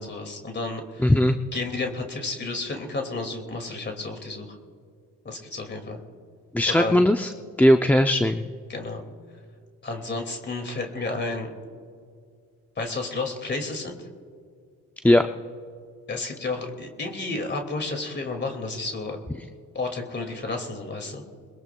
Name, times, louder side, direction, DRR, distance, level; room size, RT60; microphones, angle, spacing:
voice 1, 0.0-1.1 1.5-4.6 5.2-6.0 6.7-7.0 8.7-9.0 9.8-11.5 12.8-14.0 16.1-19.2 19.7-21.2, left 3 dB, 35° left, 3 dB, 2.3 m, -31 dB
voice 2, 1.0-1.3 6.5-7.3 7.6-8.5 15.0-15.2, left 1 dB, 5° left, 6 dB, 0.4 m, -18 dB
22.0 x 21.5 x 2.3 m, 2.1 s
cardioid pair, 90°, 30 cm